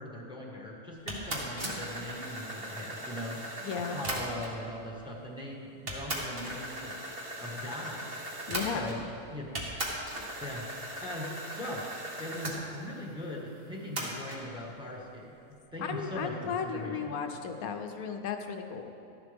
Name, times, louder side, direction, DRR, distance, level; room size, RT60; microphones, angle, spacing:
voice 1, 0.0-7.0 7.4-8.2 8.7-9.5 9.8-11.3 11.6-11.8 12.2-15.3 15.7-17.1, left 1 dB, 5° right, -2 dB, 1.4 m, -40 dB
sound 1, 1.1-4.6 5.4-5.5 5.9-9.2 9.5-12.6 14.0-14.4, right 1 dB, 40° right, 1.6 m, -38 dB
voice 2, 3.6-4.0 8.5-8.9 15.8-18.9, left 6 dB, 75° left, 5 dB, 1.1 m, -35 dB
13.0 x 11.0 x 3.5 m, 2.8 s
omnidirectional pair, 1.6 m